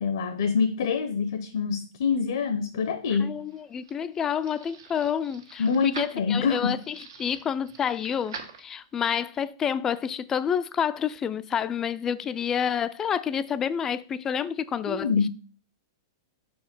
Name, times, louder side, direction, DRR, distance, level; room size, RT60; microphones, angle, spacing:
voice 1, 0.0-3.4 5.6-6.8 14.9-15.3, left 5 dB, 70° left, 0.8 m, -26 dB
voice 2, 3.1-15.3, left 8 dB, 20° left, 0.4 m, -29 dB
sound 1, 3.2-9.1, right 5 dB, 80° right, 1.7 m, -45 dB
5.0 x 4.7 x 6.0 m
hypercardioid pair, 135°, 2 cm